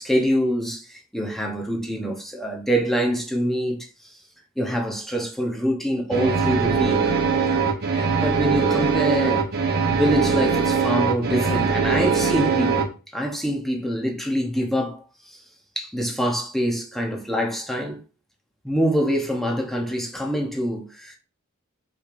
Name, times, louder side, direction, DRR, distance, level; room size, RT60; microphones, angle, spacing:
voice 1, 0.0-4.1 4.6-7.1 7.9-9.5 9.9-15.4 15.8-18.0 18.6-21.2, equal, ahead, 0.8 m, -25 dB
sound 1, 6.1-12.8, right 5 dB, 50° right, 0.8 m, -21 dB
5.7 x 3.2 x 2.5 m
head